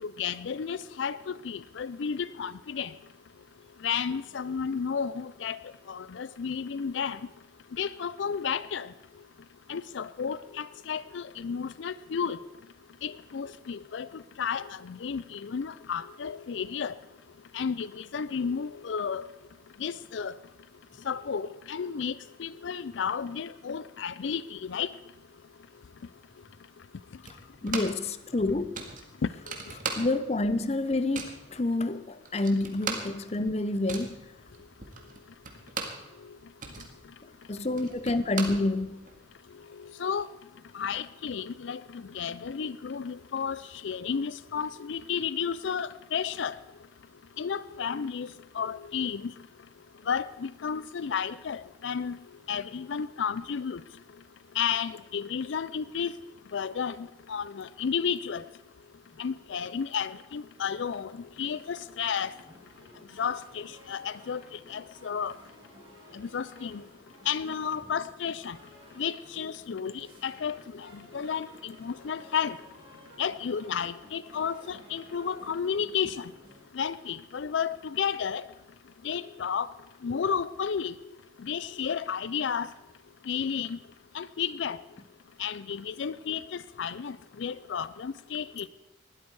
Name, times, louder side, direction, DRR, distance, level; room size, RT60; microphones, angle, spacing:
voice 1, 0.0-2.9 3.8-5.6 5.9-7.2 7.8-8.9 9.7-12.4 13.0-16.9 17.5-19.3 19.8-20.3 21.1-24.9 40.0-40.3 40.7-46.5 47.4-48.3 48.5-49.3 50.1-52.2 52.5-53.8 54.6-56.1 56.5-58.4 59.2-61.1 61.4-62.3 63.2-64.4 64.7-65.3 66.1-66.8 67.3-68.6 69.0-72.6 73.2-76.3 76.7-78.4 79.0-79.7 80.0-80.9 81.4-82.7 83.3-83.8 84.1-84.8 85.4-88.7, left 7 dB, 75° left, 17 dB, 0.4 m, -32 dB
sound 1, 27.3-28.1 28.4-28.5 28.7-30.4 30.7-31.4 32.0-32.1 32.3-36.1 36.4-39.2, right 4 dB, 45° right, 1.9 m, -38 dB
voice 2, 27.6-28.8 30.0-34.2 37.5-39.1, left 2 dB, 35° left, 13 dB, 0.6 m, -28 dB
sound 2, 60.6-76.7, equal, 25° right, 4.5 m, -55 dB
20.0 x 12.5 x 4.7 m, 1.0 s
head